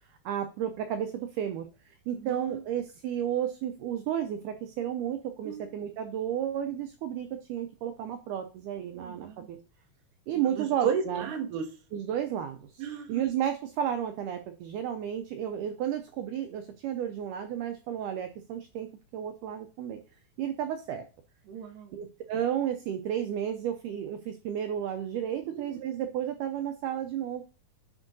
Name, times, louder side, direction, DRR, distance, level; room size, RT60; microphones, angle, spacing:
voice 1, 0.3-1.7 2.1-9.6 10.3-11.3 11.9-12.6 13.1-18.9 19.1-20.0 20.4-21.0 21.9-27.4, right 10 dB, 90° right, 7 dB, 1.8 m, -32 dB
voice 2, 2.2-2.6 5.4-5.7 8.9-9.5 10.5-11.7 12.8-13.3 21.5-22.0 25.5-26.0, right 7 dB, 70° right, 3 dB, 2.3 m, -34 dB
9.7 x 4.4 x 2.6 m, 0.35 s
omnidirectional pair, 4.2 m